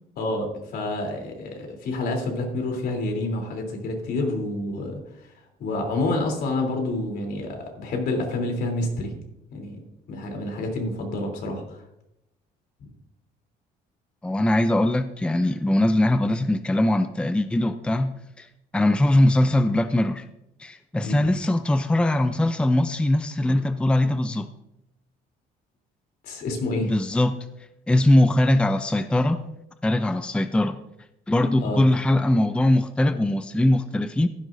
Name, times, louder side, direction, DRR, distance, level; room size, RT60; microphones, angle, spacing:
voice 1, 0.2-5.0 5.6-9.1 9.5-9.8 10.1-11.8 21.0-21.2 26.2-26.9 31.6-31.8, left 2 dB, 65° left, 2 dB, 3.4 m, -28 dB
voice 2, 14.2-18.1 18.4-18.5 18.7-20.2 20.6-24.5 26.8-27.4 27.9-29.4 29.8-30.8 31.3-34.3, left 1 dB, 5° left, 10 dB, 0.5 m, -21 dB
15.0 x 11.5 x 2.7 m, 0.83 s
cardioid pair, 110°, 17 cm